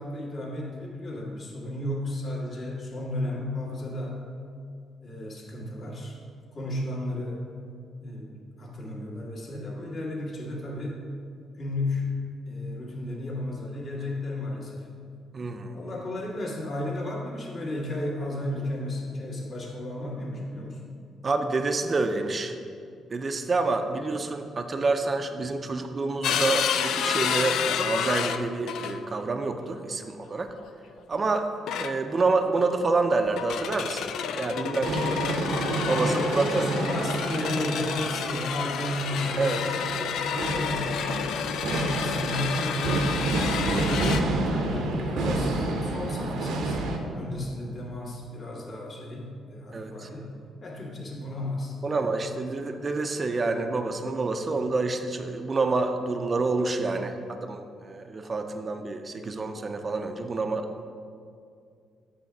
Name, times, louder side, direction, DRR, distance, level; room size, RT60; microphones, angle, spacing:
voice 1, 0.0-4.2 5.0-6.2 6.5-7.4 8.0-11.0 11.6-12.2 12.5-14.9 15.7-20.8 34.8-35.2 36.0-41.0 41.6-50.3 50.6-52.0 52.6-52.7, left 1 dB, 50° left, -3 dB, 1.8 m, -33 dB
voice 2, 15.3-15.8 21.2-22.5 23.1-30.5 31.1-31.5 31.8-35.2 35.9-36.6 39.4-39.6 45.4-45.5 49.7-50.1 51.8-60.7, right 3 dB, 35° right, 6 dB, 0.5 m, -28 dB
sound 1, 26.2-29.1 30.4-30.7 31.7-32.3 33.3-44.2, left 8 dB, 80° left, 0.3 m, -30 dB
sound 2, 34.8-47.0, right 2 dB, 85° right, 0.8 m, -29 dB
7.6 x 3.5 x 6.0 m, 2.4 s
cardioid pair, 90°, 0 cm